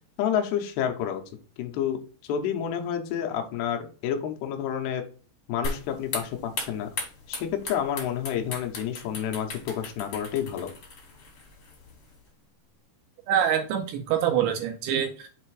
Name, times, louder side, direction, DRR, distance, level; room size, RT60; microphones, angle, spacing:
voice 1, 0.2-1.2 1.6-2.0 2.3-5.0 5.5-6.9 7.3-10.7, left 9 dB, 85° left, 4 dB, 2.3 m, -29 dB
sound 1, 5.6-12.2, left 3 dB, 70° left, 1.3 m, -38 dB
voice 2, 13.3-15.3, right 9 dB, 85° right, 5 dB, 2.6 m, -25 dB
7.3 x 3.3 x 4.7 m, 0.39 s
omnidirectional pair, 5.9 m